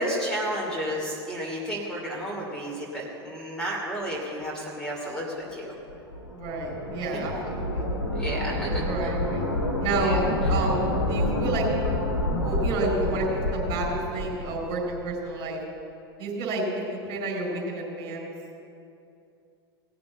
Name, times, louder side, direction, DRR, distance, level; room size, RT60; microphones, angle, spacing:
voice 1, 0.0-5.8 8.1-9.1 9.9-10.2, equal, 5° left, -4 dB, 2.7 m, -32 dB
sound 1, 5.9-15.1, left 1 dB, 80° left, 1.6 m, -28 dB
voice 2, 6.3-7.9 8.8-9.5 9.8-10.2 10.5-11.7 12.3-15.6 16.2-16.6 16.9-18.3, right 2 dB, 40° right, -2 dB, 4.5 m, -30 dB
17.5 x 6.8 x 8.6 m, 2.6 s
figure-of-eight pair, 85°, 14 cm